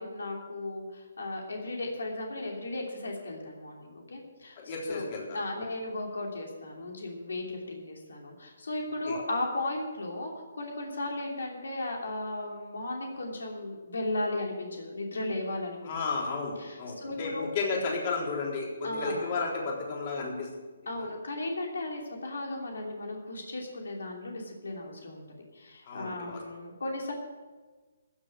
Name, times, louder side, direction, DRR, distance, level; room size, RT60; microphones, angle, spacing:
voice 1, 0.0-4.6 4.9-5.1 5.3-15.9 16.6-17.5 18.8-19.3 20.9-25.3 25.5-27.1, left 2 dB, 85° left, 0 dB, 2.9 m, -35 dB
voice 2, 4.6-5.4 9.1-9.2 15.8-20.5 25.9-26.4, left 4 dB, 40° left, -2 dB, 3.6 m, -33 dB
15.0 x 7.1 x 8.1 m, 1.3 s
hypercardioid pair, 155°, 0 cm